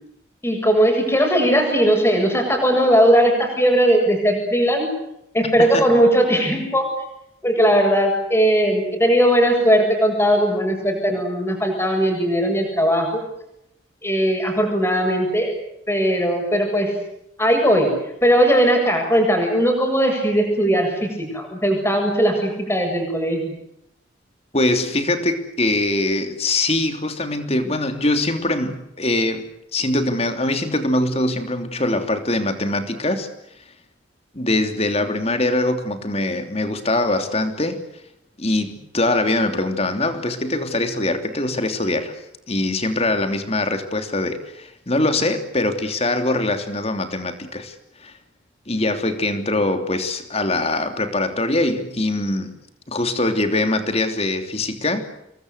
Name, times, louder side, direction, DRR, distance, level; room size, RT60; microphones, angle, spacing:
voice 1, 0.4-4.9 5.3-6.9 7.4-13.2 14.0-15.5 15.9-16.9 17.4-17.9 18.2-23.6, equal, 15° left, 3 dB, 7.5 m, -18 dB
voice 2, 24.5-33.3 34.3-37.8 38.4-47.7 48.0-48.1 48.7-52.5 52.9-55.1, left 2 dB, 35° left, 7 dB, 3.1 m, -22 dB
28.0 x 22.0 x 8.2 m, 0.81 s
head